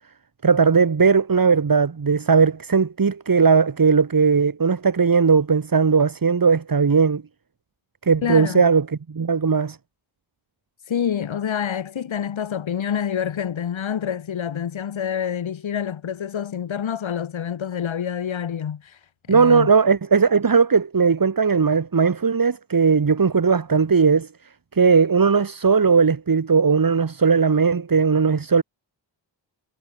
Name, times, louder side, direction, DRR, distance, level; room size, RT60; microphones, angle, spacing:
voice 1, 0.4-7.2 8.0-9.8 19.3-24.3 24.7-28.6, right 5 dB, 45° right, 3.4 m, -18 dB
voice 2, 8.2-8.6 10.9-19.0 19.3-19.7, left 8 dB, 85° left, 7.2 m, -27 dB
cardioid pair, 70°, 45 cm